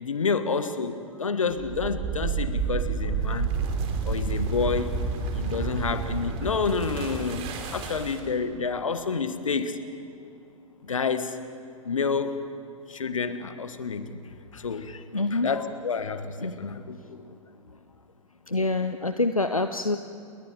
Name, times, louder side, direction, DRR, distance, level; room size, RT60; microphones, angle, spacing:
voice 1, 0.0-3.5 4.0-5.0 5.3-9.8 10.2-10.3 10.8-11.4 11.8-12.4 12.9-14.2 14.5-15.0 15.3-17.4, left 5 dB, 70° left, 11 dB, 1.4 m, -29 dB
sound 1, 1.5-8.4, right 5 dB, 35° right, 3.0 m, -30 dB
voice 2, 15.1-15.7 16.4-16.6 18.5-20.0, left 2 dB, 90° left, 9 dB, 0.7 m, -26 dB
29.5 x 21.5 x 5.1 m, 2.6 s
figure-of-eight pair, 100°, 17 cm